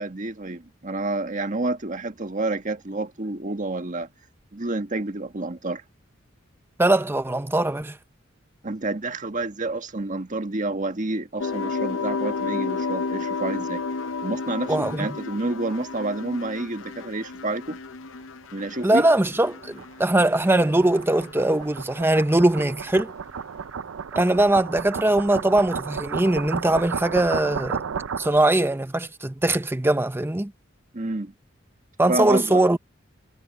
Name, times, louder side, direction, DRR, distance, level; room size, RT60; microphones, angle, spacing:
voice 1, 0.0-4.1 4.5-5.8 8.6-13.8 14.2-17.8 18.5-19.1 30.9-31.3 32.1-32.6, right 2 dB, 40° right, 1.6 m, -29 dB
voice 2, 6.8-8.0 14.7-15.1 18.8-23.1 24.1-27.8 28.2-30.5 32.0-32.8, right 1 dB, 10° right, 0.7 m, -21 dB
sound 1, 11.4-20.5 20.8-21.5, left 4 dB, 70° left, 0.7 m, -32 dB
sound 2, 18.6-28.6, right 6 dB, 80° right, 0.5 m, -33 dB
head